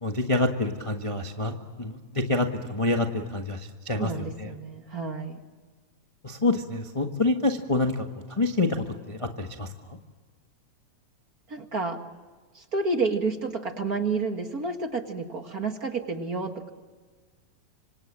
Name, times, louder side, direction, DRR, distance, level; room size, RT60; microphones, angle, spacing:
voice 1, 0.0-4.1 4.4-4.5 6.2-9.7, left 2 dB, 25° left, 4 dB, 0.6 m, -27 dB
voice 2, 4.0-5.4 11.5-12.0 12.5-16.7, right 3 dB, 35° right, 5 dB, 1.7 m, -30 dB
27.0 x 26.0 x 7.4 m, 1.4 s
omnidirectional pair, 3.4 m